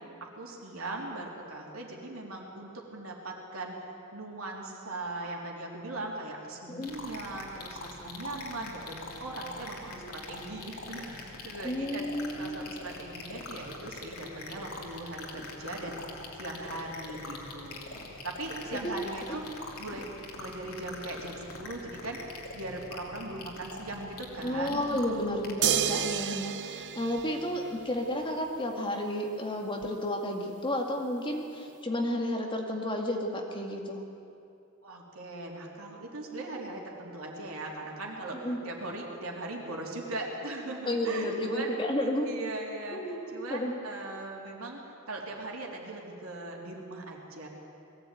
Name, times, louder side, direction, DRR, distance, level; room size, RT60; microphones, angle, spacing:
voice 1, 0.2-3.8 4.1-12.0 12.4-16.0 16.3-20.1 20.4-22.2 22.5-25.2 34.8-41.7 42.3-44.8 45.1-47.5, right 2 dB, 70° right, -1 dB, 3.6 m, -39 dB
sound 1, 6.8-25.5, left 3 dB, 75° left, 3.0 m, -44 dB
voice 2, 11.6-12.6 18.8-19.0 24.4-34.0 38.4-38.6 40.9-42.3 42.9-43.7, left 1 dB, 25° left, 1 dB, 2.1 m, -32 dB
sound 2, 25.6-28.1 29.8-29.9, right 9 dB, 50° right, 0.7 m, -31 dB
21.0 x 15.5 x 9.3 m, 2.6 s
head